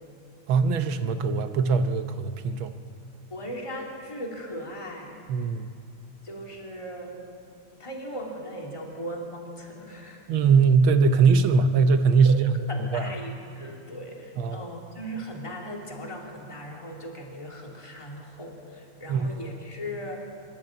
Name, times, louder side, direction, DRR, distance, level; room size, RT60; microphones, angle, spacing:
voice 1, 0.5-2.7 5.3-5.7 10.3-12.5 12.9-13.1 14.4-14.6 19.1-19.3, right 5 dB, 70° right, 9 dB, 1.6 m, -21 dB
voice 2, 3.3-5.5 6.2-7.2 7.8-10.3 12.2-12.3 12.7-20.2, equal, 15° left, -1 dB, 2.9 m, -38 dB
25.5 x 13.5 x 8.8 m, 2.4 s
omnidirectional pair, 2.4 m